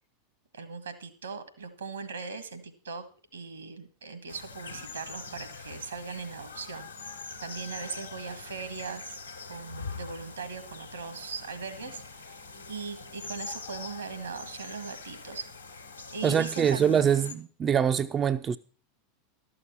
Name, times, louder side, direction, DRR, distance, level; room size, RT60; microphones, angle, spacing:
voice 1, 0.5-3.0 3.3-6.9 7.4-9.1 9.5-12.4 12.7-15.5 15.7-15.8 16.1-17.4, right 5 dB, 75° right, 1.5 m, -39 dB
sound 1, 4.3-17.4, left 4 dB, 85° left, 1.2 m, -43 dB
voice 2, 16.2-18.6, right 8 dB, 25° right, 0.4 m, -24 dB
12.5 x 6.8 x 5.7 m
figure-of-eight pair, 85°, 0 cm